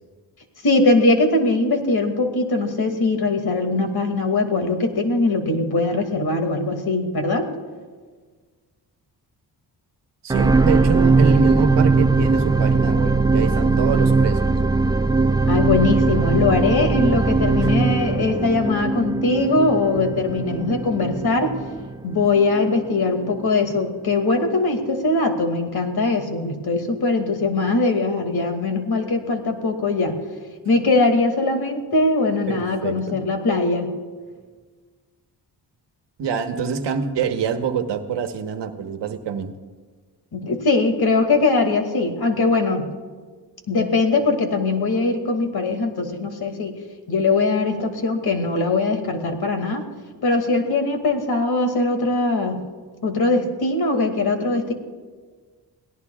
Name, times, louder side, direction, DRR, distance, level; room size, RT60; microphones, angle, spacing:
voice 1, 0.6-7.5 15.5-21.5 22.0-30.2 30.6-33.9 40.3-42.9 43.7-46.8 47.1-49.8 50.2-52.7 53.0-54.7, left 3 dB, 60° left, 6 dB, 2.4 m, -21 dB
voice 2, 10.2-14.4 32.5-33.2 36.2-39.5, right 6 dB, 85° right, 7 dB, 1.3 m, -25 dB
sound 1, 10.3-22.7 23.3-23.4, right 3 dB, 10° right, 0.5 m, -20 dB
29.5 x 17.5 x 2.4 m, 1.5 s
cardioid pair, 75°, 42 cm